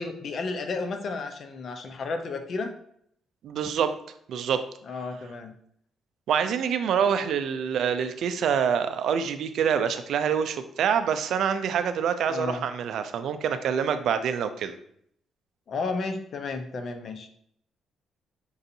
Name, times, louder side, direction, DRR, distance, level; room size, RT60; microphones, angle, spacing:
voice 1, 0.0-2.7 4.9-5.5 12.3-12.7 15.7-17.3, left 3 dB, 55° left, 6 dB, 0.5 m, -32 dB
voice 2, 3.4-4.0 4.3-4.7 6.3-14.8, right 7 dB, 75° right, 10 dB, 0.3 m, -26 dB
5.4 x 2.5 x 2.7 m, 0.68 s
cardioid pair, 90°, 0 cm